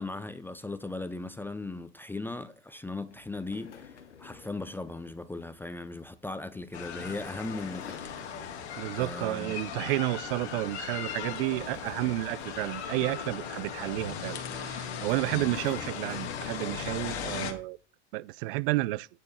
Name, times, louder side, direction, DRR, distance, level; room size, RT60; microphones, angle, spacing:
voice 1, 0.0-3.9 4.2-8.1 8.9-9.6 15.3-15.5, left 2 dB, 5° left, 0.5 m, -38 dB
sound 1, 3.1-9.6 10.0-10.3 10.7-13.7 14.5-16.9, left 7 dB, 90° left, 1.0 m, -52 dB
sound 2, 6.7-17.5, left 7 dB, 70° left, 1.9 m, -38 dB
voice 2, 8.8-17.8 18.1-19.1, right 19 dB, 55° right, 0.4 m, -31 dB
9.6 x 4.4 x 7.0 m
hypercardioid pair, 95°, 34 cm